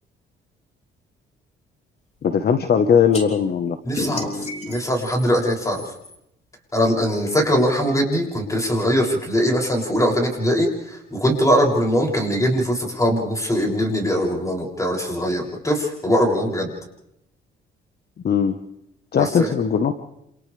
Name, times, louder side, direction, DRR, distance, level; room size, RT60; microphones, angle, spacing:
voice 1, 2.2-3.8 18.2-18.6 19.1-19.9, left 7 dB, 50° left, 7 dB, 1.3 m, -19 dB
sound 1, 3.1-3.2 3.9-6.1, left 2 dB, 30° left, 3.6 m, -31 dB
voice 2, 3.8-5.8 6.7-16.7 19.1-19.5, equal, 15° left, -1 dB, 7.2 m, -21 dB
28.5 x 28.5 x 3.5 m, 0.80 s
cardioid pair, 90°, 20 cm